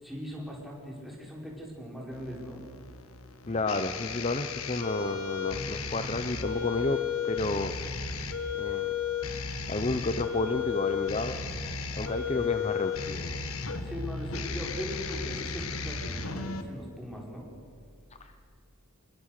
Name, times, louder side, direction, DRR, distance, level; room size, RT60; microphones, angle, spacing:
voice 1, 0.0-2.6 11.9-12.5 13.8-17.5, equal, ahead, -3 dB, 4.8 m, -40 dB
sound 1, 2.1-16.6, left 6 dB, 75° left, 1.6 m, -34 dB
voice 2, 3.5-7.7 8.5-8.9 9.7-11.4 11.9-13.4 18.2-18.3, left 2 dB, 30° left, 8 dB, 0.8 m, -31 dB
26.0 x 21.5 x 6.6 m, 2.1 s
head